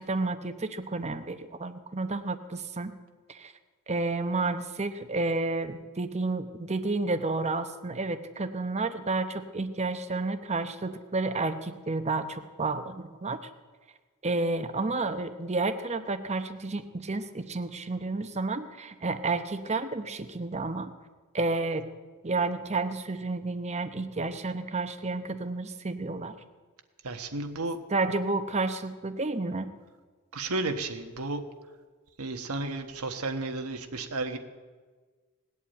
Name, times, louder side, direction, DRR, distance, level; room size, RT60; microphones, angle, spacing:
voice 1, 0.0-2.9 3.3-3.5 3.9-13.4 14.2-20.9 21.3-21.9 22.2-26.3 27.9-29.7, right 3 dB, 30° right, 10 dB, 0.9 m, -31 dB
voice 2, 27.0-27.8 30.3-31.4 32.2-34.4, right 2 dB, 85° right, 6 dB, 1.3 m, -33 dB
19.0 x 8.4 x 8.8 m, 1.4 s
head